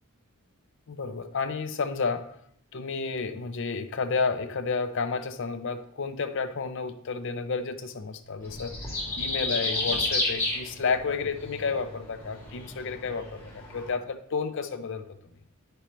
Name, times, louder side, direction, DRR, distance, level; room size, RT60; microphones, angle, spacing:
voice 1, 0.9-2.4 2.7-15.2, left 4 dB, 55° left, 9 dB, 0.6 m, -31 dB
sound 1, 8.4-13.9, left 2 dB, 15° left, 2.3 m, -32 dB
10.0 x 5.4 x 3.1 m, 0.67 s
head